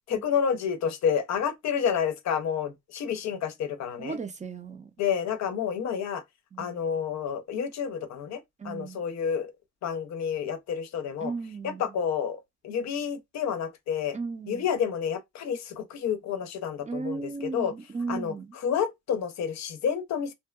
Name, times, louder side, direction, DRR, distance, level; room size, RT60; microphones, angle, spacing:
voice 1, 0.1-4.2 5.0-6.2 6.6-9.5 9.8-11.3 11.6-14.2 14.5-17.7 18.1-20.3, left 7 dB, 65° left, 0.5 m, -29 dB
voice 2, 4.0-4.9 6.5-6.7 8.6-9.0 11.2-11.8 14.1-14.6 16.9-18.5, right 4 dB, 25° right, 0.5 m, -35 dB
2.7 x 2.2 x 2.2 m
cardioid pair, 90°, 30 cm